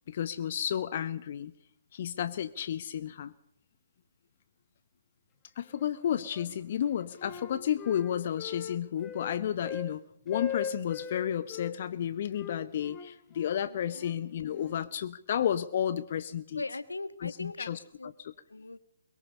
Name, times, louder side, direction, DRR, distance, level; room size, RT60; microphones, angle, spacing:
voice 1, 0.1-1.5 1.9-3.3 5.6-16.6 17.2-17.8 18.2-18.3, left 9 dB, 45° left, 14 dB, 0.8 m, -32 dB
Wind instrument woodwind instrument, 5.7-6.5 6.8-9.9 10.3-11.7 12.3-14.8, left 8 dB, 15° left, 2.9 m, -41 dB
voice 2, 13.7-14.1 16.5-17.7 18.0-18.1 18.5-18.8, left 2 dB, 80° left, 14 dB, 1.5 m, -39 dB
23.5 x 22.0 x 5.5 m, 0.74 s
figure-of-eight pair, 135°, 0 cm